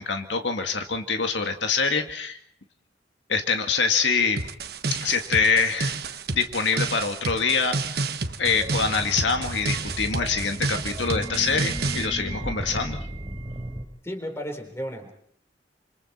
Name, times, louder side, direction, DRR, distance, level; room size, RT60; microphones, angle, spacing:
voice 1, 0.0-2.4 3.3-4.4 4.9-8.1 8.4-13.1, left 5 dB, 75° left, 5 dB, 1.9 m, -25 dB
sound 1, 4.4-12.1, right 3 dB, 55° right, 1.3 m, -30 dB
sound 2, 8.4-13.8, right 1 dB, 25° right, 4.2 m, -34 dB
voice 2, 14.0-15.1, equal, 15° left, 5 dB, 4.1 m, -33 dB
28.5 x 27.0 x 4.4 m, 0.62 s
head